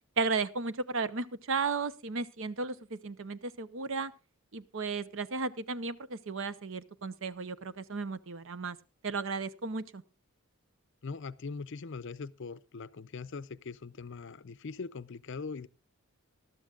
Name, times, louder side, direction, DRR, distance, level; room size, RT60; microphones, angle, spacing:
voice 1, 0.2-4.1 4.5-8.8 9.0-10.0, right 4 dB, 60° right, 0.7 m, -34 dB
voice 2, 11.0-15.7, left 4 dB, 55° left, 0.5 m, -41 dB
20.0 x 12.5 x 2.4 m
head